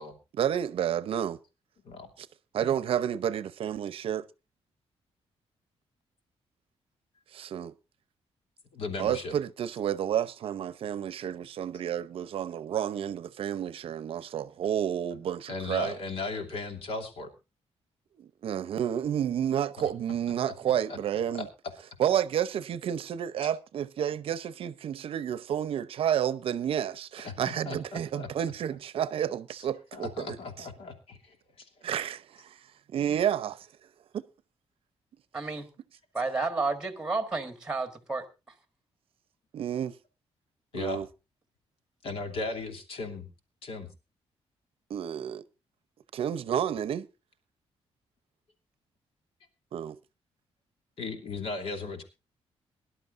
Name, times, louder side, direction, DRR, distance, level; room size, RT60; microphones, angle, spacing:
voice 1, 0.4-1.4 2.2-2.3 2.5-4.3 7.4-7.7 9.0-16.0 18.2-21.5 22.0-30.7 31.8-32.6 32.9-33.7 34.1-34.2 39.5-39.9 40.7-41.1 44.9-45.4 46.1-47.1 49.7-50.0, right 9 dB, 60° right, 0.7 m, -30 dB
voice 2, 8.7-9.3 15.1-15.2 15.5-17.3 19.8-19.9 20.5-20.6 21.3-21.5 23.4-23.5 27.2-28.3 29.9-31.7 40.7-41.0 42.0-43.3 43.6-43.9 51.0-52.0, left 3 dB, 65° left, 3.0 m, -37 dB
voice 3, 35.3-35.7 36.1-38.3, right 3 dB, 5° right, 1.6 m, -31 dB
23.0 x 11.5 x 2.6 m
wide cardioid pair, 175°, 11 cm